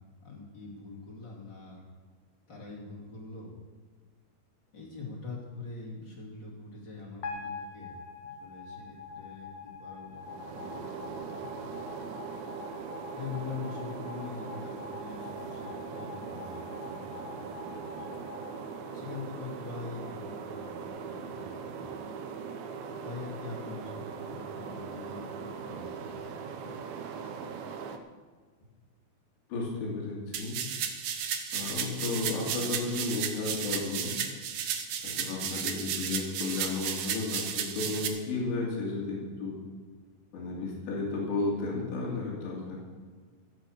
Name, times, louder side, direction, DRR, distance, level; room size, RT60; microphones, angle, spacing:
voice 1, 0.2-1.8 2.5-3.5 4.7-7.9 8.2-11.7 13.1-18.2 18.9-22.1 23.0-26.2 26.6-26.7, left 4 dB, 30° left, -4 dB, 2.8 m, -44 dB
sound 1, 7.2-19.5, left 4 dB, 75° left, 1.2 m, -45 dB
sound 2, 10.1-28.0, right 6 dB, 70° right, 2.4 m, -40 dB
voice 2, 29.5-30.6 31.5-34.1 35.0-39.5 40.3-42.8, left 3 dB, 90° left, -3 dB, 5.0 m, -33 dB
sound 3, 30.3-38.1, right 8 dB, 90° right, 1.5 m, -34 dB
15.0 x 8.1 x 7.6 m, 1.5 s
omnidirectional pair, 4.9 m